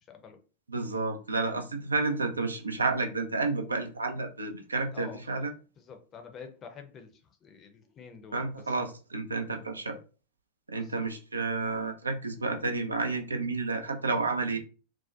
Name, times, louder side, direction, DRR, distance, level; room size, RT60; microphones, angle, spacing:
voice 1, 0.1-0.4 4.9-5.5 5.8-8.7 10.7-11.1, left 6 dB, 30° left, 5 dB, 0.5 m, -48 dB
voice 2, 0.7-5.5 8.3-10.0 10.7-14.6, right 3 dB, 75° right, 5 dB, 0.4 m, -31 dB
2.6 x 2.0 x 2.4 m, 0.36 s
figure-of-eight pair, 90°, 0 cm